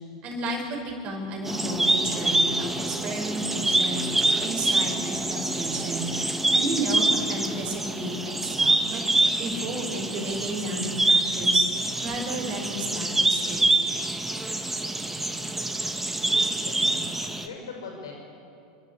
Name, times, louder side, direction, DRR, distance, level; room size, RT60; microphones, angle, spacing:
voice 1, 0.2-4.1 4.4-6.1 6.5-9.0 9.4-11.7 12.0-13.7, right 2 dB, 45° right, 0 dB, 5.6 m, -32 dB
sound 1, 1.4-17.5, right 2 dB, 10° right, 1.5 m, -25 dB
voice 2, 16.4-17.0 17.4-18.1, left 4 dB, 75° left, 1 dB, 5.8 m, -40 dB
30.0 x 12.0 x 8.5 m, 2.6 s
hypercardioid pair, 95°, 3 cm